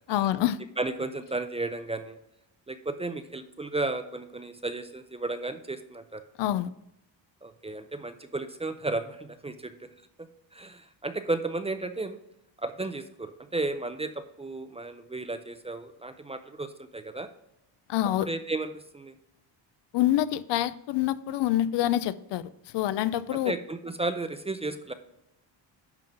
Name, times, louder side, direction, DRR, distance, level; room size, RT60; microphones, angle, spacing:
voice 1, 0.1-0.6 6.4-6.7 17.9-18.3 19.9-22.4 22.7-23.5, left 13 dB, 70° left, 0.6 m, -26 dB
voice 2, 0.8-2.2 2.7-6.2 7.4-9.9 10.2-12.2 12.6-17.3 18.2-19.1 23.0-24.9, right 2 dB, 15° right, 0.4 m, -34 dB
10.5 x 3.7 x 5.7 m
cardioid pair, 120°, 44 cm